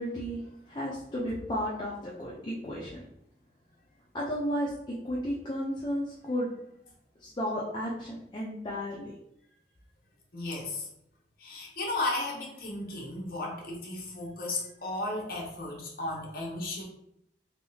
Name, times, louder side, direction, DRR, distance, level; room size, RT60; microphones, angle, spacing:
voice 1, 0.0-3.0 4.1-4.7 5.0-6.5 7.2-9.1, equal, 25° left, -5 dB, 0.4 m, -33 dB
voice 2, 10.3-10.9 11.4-16.8, left 2 dB, 50° left, -2 dB, 0.8 m, -34 dB
3.4 x 2.3 x 2.7 m, 0.79 s
head